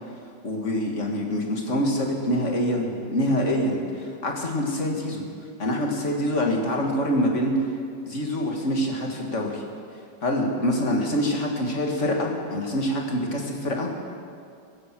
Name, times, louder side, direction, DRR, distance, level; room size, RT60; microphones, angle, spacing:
voice 1, 0.4-5.2 5.6-7.5 8.1-9.6 10.2-13.9, equal, 40° left, 0 dB, 2.2 m, -25 dB
17.5 x 10.0 x 7.5 m, 2.3 s
omnidirectional pair, 2.1 m